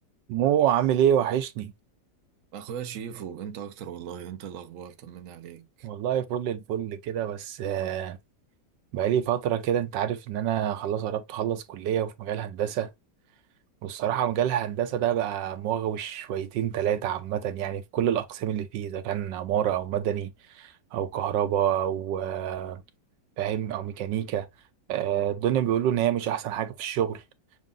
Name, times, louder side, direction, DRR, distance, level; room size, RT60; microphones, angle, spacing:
voice 1, 0.3-1.7 5.8-8.2 8.9-12.9 13.8-22.8 23.4-24.5 24.9-27.2, right 10 dB, 85° right, 1.3 m, -27 dB
voice 2, 2.5-5.9, right 8 dB, 55° right, 1.1 m, -38 dB
6.4 x 2.2 x 3.8 m
omnidirectional pair, 1.9 m